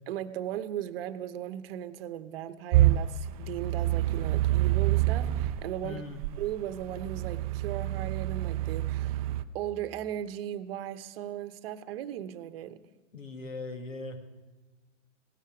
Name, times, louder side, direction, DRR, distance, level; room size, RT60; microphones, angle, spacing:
voice 1, 0.1-6.0 6.4-9.2 9.5-12.8, right 11 dB, 50° right, 12 dB, 0.9 m, -37 dB
sound 1, 2.7-5.6 6.2-9.4, right 14 dB, 30° right, 0.4 m, -27 dB
voice 2, 5.8-6.2 13.1-14.2, left 3 dB, 85° left, 6 dB, 2.0 m, -39 dB
17.0 x 13.0 x 4.9 m, 1.3 s
hypercardioid pair, 125°, 38 cm